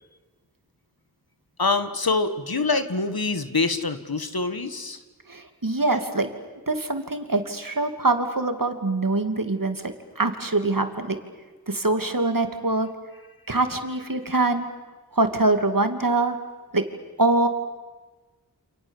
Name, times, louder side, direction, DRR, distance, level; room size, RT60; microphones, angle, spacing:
voice 1, 1.6-5.0, left 3 dB, 75° left, 10 dB, 1.8 m, -25 dB
voice 2, 5.3-6.3 6.7-11.2 11.7-12.9 13.5-14.7 15.1-16.4 16.7-16.8 17.2-17.5, right 2 dB, 65° right, 7 dB, 2.7 m, -24 dB
29.0 x 28.0 x 7.3 m, 1.3 s
wide cardioid pair, 40°, 36 cm